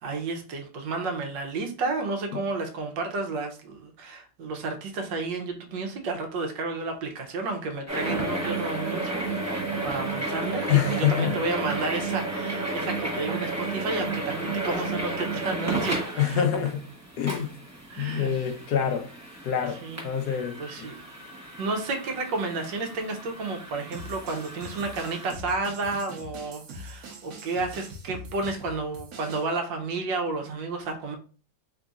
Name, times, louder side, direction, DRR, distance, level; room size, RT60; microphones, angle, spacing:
voice 1, 0.0-16.4 17.9-18.3 19.7-20.0 20.6-21.0 21.6-31.2, right 3 dB, 80° right, 1.5 m, -31 dB
sound 1, 7.9-25.3, right 2 dB, 15° right, 0.6 m, -33 dB
voice 2, 10.7-11.4 16.2-16.8 17.2-17.5 18.0-19.1 19.4-20.9, left 8 dB, 70° left, 1.1 m, -26 dB
sound 2, 23.9-29.5, right 1 dB, 60° right, 1.3 m, -43 dB
3.9 x 3.7 x 2.4 m
omnidirectional pair, 2.0 m